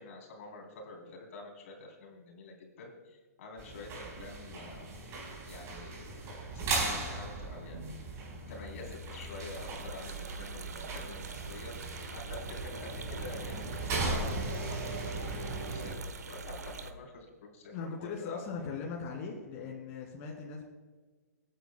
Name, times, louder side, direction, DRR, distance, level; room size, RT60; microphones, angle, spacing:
voice 1, 0.0-4.9 5.5-7.9 8.5-11.7 12.1-18.4, left 2 dB, 55° left, 1 dB, 3.4 m, -47 dB
sound 1, 3.6-15.9, right 2 dB, 30° right, 4.3 m, -38 dB
sound 2, 8.5-16.9, right 4 dB, 80° right, 1.1 m, -44 dB
voice 2, 17.7-20.6, left 5 dB, 35° left, -3 dB, 2.5 m, -39 dB
24.0 x 9.2 x 2.2 m, 1.4 s
hypercardioid pair, 130°, 9 cm